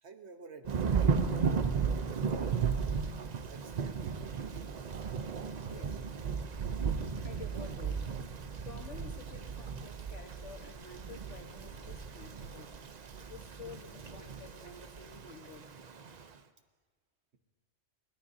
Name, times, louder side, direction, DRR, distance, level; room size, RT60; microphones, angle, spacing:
voice 1, 0.0-1.8 2.3-3.1 3.5-4.5, right 4 dB, 65° right, 7 dB, 1.3 m, -50 dB
Thunder / Rain, 0.7-16.3, right 6 dB, 45° right, 0.7 m, -35 dB
voice 2, 5.7-6.1 7.2-8.1 8.6-12.8 13.2-16.0, left 5 dB, 80° left, 5 dB, 1.6 m, -51 dB
23.5 x 17.5 x 2.7 m, 1.4 s
omnidirectional pair, 1.2 m